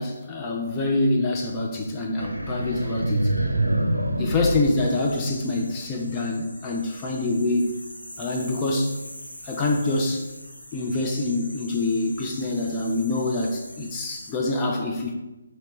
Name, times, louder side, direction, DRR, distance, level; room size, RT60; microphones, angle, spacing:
voice 1, 0.0-3.3 4.2-7.8 8.2-9.0 9.4-10.3 10.7-15.1, left 2 dB, 20° left, 0 dB, 0.4 m, -25 dB
sound 1, 2.2-5.6, right 1 dB, 85° right, 0.5 m, -26 dB
sound 2, 4.6-14.3, equal, 90° left, 0.8 m, -43 dB
4.2 x 2.9 x 3.0 m, 1.0 s
figure-of-eight pair, 150°, 0 cm